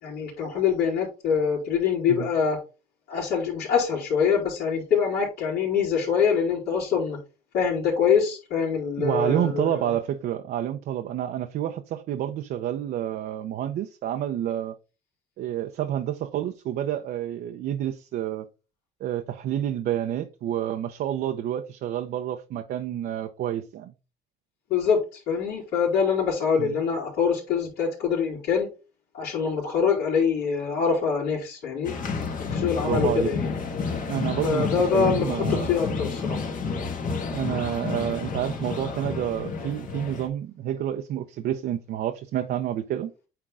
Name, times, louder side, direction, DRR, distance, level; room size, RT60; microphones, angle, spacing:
voice 1, 0.0-2.6 3.1-7.2 7.5-9.8 24.7-28.7 29.1-32.0 32.5-33.5 34.4-36.4, left 6 dB, 70° left, 3.6 m, -24 dB
voice 2, 9.0-14.7 15.4-18.4 19.0-23.9 26.6-26.7 32.8-33.3 34.1-35.7 37.3-43.1, right 11 dB, 65° right, 0.7 m, -29 dB
sound 1, 31.8-40.3, left 5 dB, 50° left, 1.7 m, -30 dB
8.9 x 3.7 x 3.7 m
cardioid pair, 110°, 17 cm